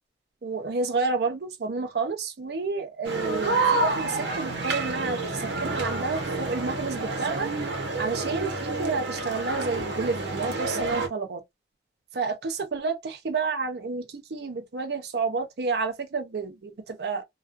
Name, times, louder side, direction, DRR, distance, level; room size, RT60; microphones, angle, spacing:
voice 1, 0.4-7.5 8.0-11.4 12.1-17.2, right 4 dB, 65° right, 0.5 m, -30 dB
sound 1, 3.0-11.1, right 3 dB, 85° right, 0.8 m, -29 dB
2.3 x 2.3 x 2.4 m
head